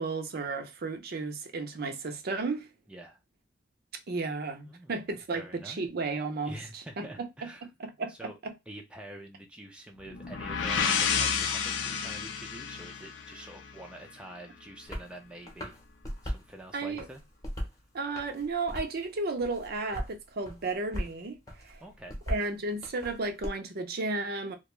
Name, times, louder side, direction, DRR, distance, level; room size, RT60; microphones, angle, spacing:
voice 1, 0.0-2.7 4.1-7.5 7.8-8.5 16.7-17.1 17.9-21.8 22.3-24.6, right 3 dB, 55° right, 0.5 m, -34 dB
voice 2, 2.9-3.2 4.7-4.9 5.3-5.9 6.4-7.7 8.1-8.4 8.7-15.8 16.2-17.2 21.8-22.2, right 1 dB, 5° right, 0.4 m, -46 dB
sound 1, 10.1-13.9, left 6 dB, 80° left, 0.5 m, -30 dB
sound 2, 14.9-15.1 15.5-16.5 16.9-17.8 18.2-19.1 19.4-20.1 20.5-21.1 21.5-23.5, equal, 20° left, 0.8 m, -37 dB
2.4 x 2.2 x 3.0 m
head